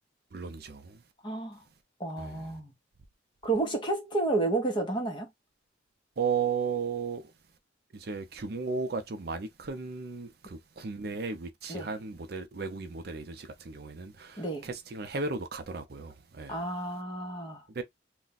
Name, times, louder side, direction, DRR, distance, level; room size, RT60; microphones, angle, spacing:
voice 1, 0.3-1.0 2.2-2.5 6.2-7.3 7.9-16.6 17.7-17.8, right 5 dB, 50° right, 0.5 m, -35 dB
voice 2, 1.2-1.6 2.0-2.7 3.4-5.3 11.7-11.9 14.4-14.7 16.5-17.6, right 2 dB, 25° left, 0.9 m, -31 dB
2.4 x 2.2 x 3.9 m
head